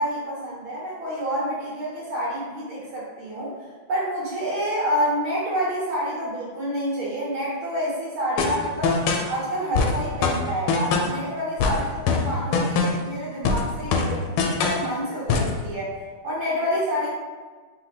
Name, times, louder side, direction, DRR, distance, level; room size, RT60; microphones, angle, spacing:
voice 1, 0.0-3.5 3.9-9.0 9.3-15.9 16.2-17.1, equal, 75° right, -8 dB, 1.9 m, -28 dB
sound 1, 8.4-9.3 9.7-11.2 11.6-13.1 13.4-14.9 15.3-15.6, left 4 dB, 85° left, 1.4 m, -23 dB
4.9 x 3.2 x 3.3 m, 1.4 s
omnidirectional pair, 2.3 m